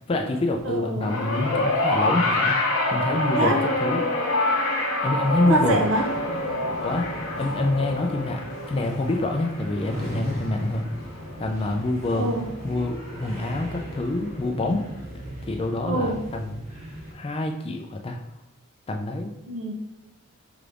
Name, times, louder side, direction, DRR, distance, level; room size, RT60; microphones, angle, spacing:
voice 1, 0.1-2.6 2.9-4.0 5.0-5.8 6.8-7.1 7.4-8.4 8.7-10.9 11.4-12.3 12.6-14.8 15.4-16.5 17.1-18.2 18.9-19.3, left 2 dB, 25° left, 3 dB, 0.3 m, -26 dB
voice 2, 0.6-1.2 3.4-3.6 5.5-6.1 12.1-12.5 15.9-16.2 19.5-19.7, right 2 dB, 65° right, 4 dB, 0.5 m, -25 dB
sound 1, 1.0-11.5 12.5-12.6, left 2 dB, 70° left, 0.7 m, -26 dB
sound 2, 5.2-17.1, equal, 30° right, 1.1 m, -38 dB
5.7 x 3.3 x 2.5 m, 0.99 s
head